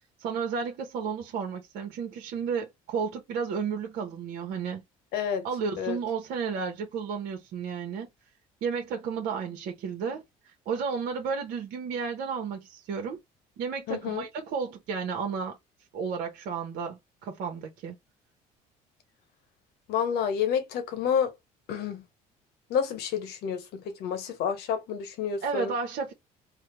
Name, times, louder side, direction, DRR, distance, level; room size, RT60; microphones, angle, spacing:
voice 1, 0.2-4.8 5.4-8.1 8.6-13.2 13.6-15.6 15.9-17.9 25.4-26.1, right 6 dB, 70° right, 0.8 m, -32 dB
voice 2, 5.1-5.4 5.8-6.0 13.9-14.2 19.9-21.3 21.7-22.0 22.7-25.7, left 8 dB, 70° left, 1.0 m, -29 dB
3.4 x 2.0 x 3.0 m
supercardioid pair, 85°, 17 cm